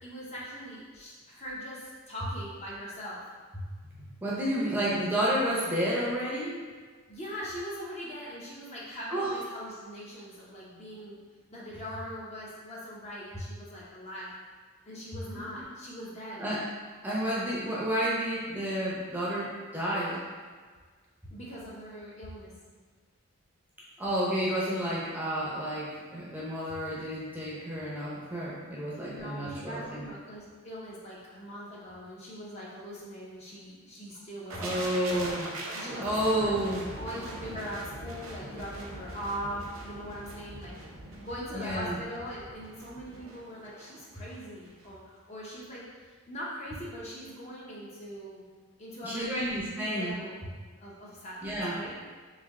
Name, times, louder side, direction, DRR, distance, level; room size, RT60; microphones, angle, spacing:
voice 1, 0.0-3.2 7.1-11.2 11.5-14.3 14.8-16.5 21.3-22.5 29.1-35.0 35.7-36.6 37.0-40.8 41.2-48.4 48.8-50.4 50.8-52.0, equal, 30° left, -6 dB, 0.7 m, -41 dB
voice 2, 3.9-6.6 9.1-9.3 15.3-15.7 16.4-16.6 17.0-20.2 24.0-30.0 34.6-35.5 36.0-36.8 41.5-42.0 49.0-50.2 51.4-51.7, equal, 10° right, -7 dB, 0.6 m, -31 dB
sound 1, 34.5-44.4 44.7-44.9, right 1 dB, 70° right, 0.6 m, -42 dB
3.3 x 2.6 x 3.5 m, 1.5 s
head